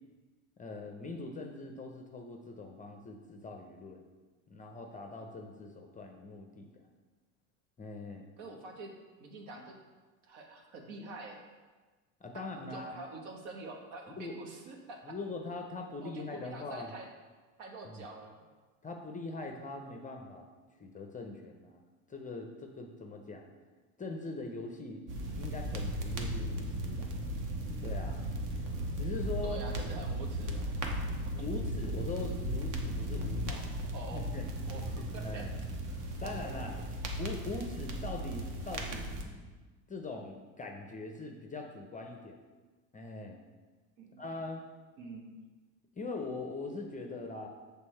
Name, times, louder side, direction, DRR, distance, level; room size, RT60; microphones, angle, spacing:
voice 1, 0.6-4.0 4.5-6.8 7.8-8.3 12.2-13.0 14.2-14.4 15.0-16.9 17.8-18.0 18.8-20.5 20.8-21.8 22.1-23.5 24.0-25.1 25.3-27.1 27.8-28.2 29.0-29.6 31.3-33.6 34.1-34.5 35.2-35.5 36.2-36.8 37.2-39.5 39.9-42.4 42.9-43.4 44.2-44.6 46.0-47.5, left 3 dB, 20° left, 3 dB, 0.5 m, -42 dB
voice 2, 8.4-8.9 9.2-9.8 10.2-11.4 12.3-15.0 16.0-17.1 17.6-18.5 29.4-30.8 33.5-33.6 33.9-34.2 34.7-35.6 36.2-36.9 44.0-44.2 45.0-45.4, right 3 dB, 65° right, 2 dB, 1.2 m, -46 dB
sound 1, 25.1-39.2, right 1 dB, 45° right, 0.9 m, -36 dB
6.2 x 3.5 x 4.3 m, 1.3 s
supercardioid pair, 95°, 44 cm